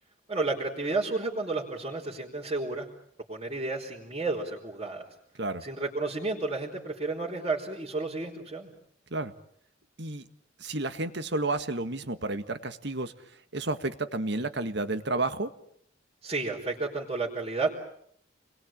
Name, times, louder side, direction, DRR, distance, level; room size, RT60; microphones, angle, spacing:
voice 1, 0.3-2.9 3.3-5.0 5.6-8.7 16.2-17.7, right 3 dB, 30° right, -6 dB, 4.2 m, -31 dB
voice 2, 10.6-13.1 13.5-15.5, right 2 dB, 65° right, 10 dB, 1.8 m, -31 dB
29.5 x 22.0 x 8.9 m, 0.68 s
head